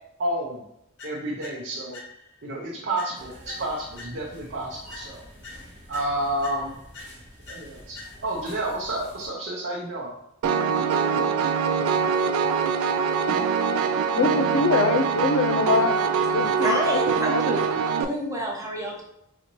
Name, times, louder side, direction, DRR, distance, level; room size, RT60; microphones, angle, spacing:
voice 1, 0.2-0.6 1.0-2.0 2.4-5.2 5.9-6.8 7.5-10.1, right 1 dB, 55° right, -4 dB, 0.6 m, -30 dB
sound 1, 1.0-2.5 3.0-4.5 4.9-8.5, left 3 dB, 55° left, 0.9 m, -46 dB
sound 2, 3.2-9.3, equal, 35° right, 1.2 m, -47 dB
Piano, 10.4-18.0, right 6 dB, 85° right, 0.3 m, -23 dB
voice 2, 13.4-16.0 16.3-16.8 17.3-17.4, left 4 dB, 75° left, 8 dB, 0.4 m, -24 dB
voice 3, 16.6-17.7 18.0-19.0, equal, 15° right, -1 dB, 0.8 m, -28 dB
4.2 x 2.6 x 2.9 m, 0.79 s
head